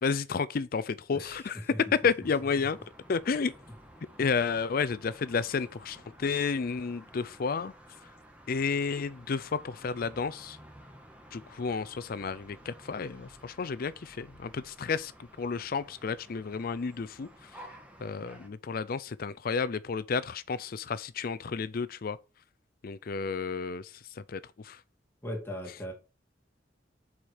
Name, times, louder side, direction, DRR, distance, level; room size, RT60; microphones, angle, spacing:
voice 1, 0.0-2.8 3.1-3.5 4.2-7.7 8.5-10.6 11.3-15.1 15.4-17.5 18.0-22.2 22.8-24.8, left 5 dB, 50° left, 0.4 m, -31 dB
voice 2, 1.1-2.3 25.2-25.9, equal, 10° left, 2.5 m, -39 dB
sound 1, 2.2-18.5, equal, 5° right, 1.6 m, -53 dB
7.2 x 5.0 x 6.4 m
head